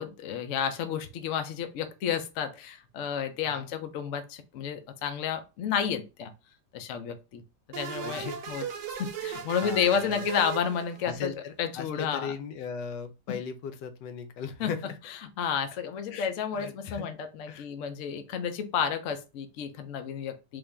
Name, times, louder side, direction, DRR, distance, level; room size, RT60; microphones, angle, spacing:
voice 1, 0.0-6.3 6.7-7.4 7.7-8.6 9.0-11.3 11.6-12.3 13.3-13.4 14.6-14.7 15.4-20.6, left 7 dB, 65° left, 0.8 m, -31 dB
sound 1, 7.7-11.3, right 8 dB, 85° right, 1.3 m, -38 dB
voice 2, 8.0-8.4 9.2-10.3 11.0-15.0 16.1-17.1 17.5-17.6, left 6 dB, 85° left, 1.2 m, -38 dB
3.6 x 2.6 x 3.3 m
omnidirectional pair, 1.8 m